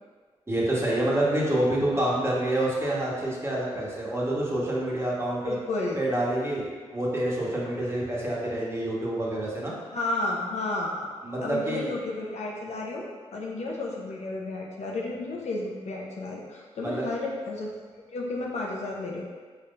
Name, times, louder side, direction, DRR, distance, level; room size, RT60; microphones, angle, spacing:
voice 1, 0.5-5.6 5.9-6.7 6.9-9.7 11.2-11.9 16.8-17.1, right 1 dB, 20° right, -5 dB, 1.4 m, -27 dB
voice 2, 5.4-6.0 9.9-11.1 11.4-13.1 13.3-17.7 18.1-19.2, left 2 dB, 65° left, -2 dB, 0.7 m, -32 dB
4.3 x 3.9 x 2.5 m, 1.5 s
supercardioid pair, 50°, 12 cm